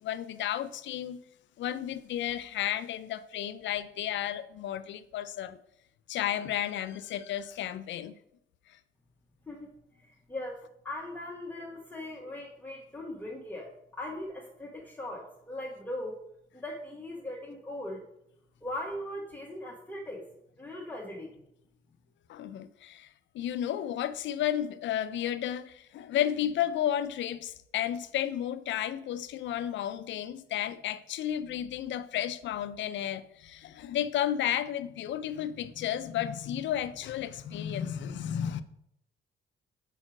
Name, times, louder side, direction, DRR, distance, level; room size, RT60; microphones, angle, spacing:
voice 1, 0.0-1.2 1.6-5.6 6.1-8.1 22.3-23.1 23.3-38.6, left 11 dB, 70° left, 0.5 m, -32 dB
voice 2, 10.0-10.6 10.8-16.2 16.5-18.0 18.6-20.2 20.6-21.3, left 1 dB, 10° left, 1.3 m, -39 dB
4.9 x 4.3 x 6.0 m
cardioid pair, 90°, 20 cm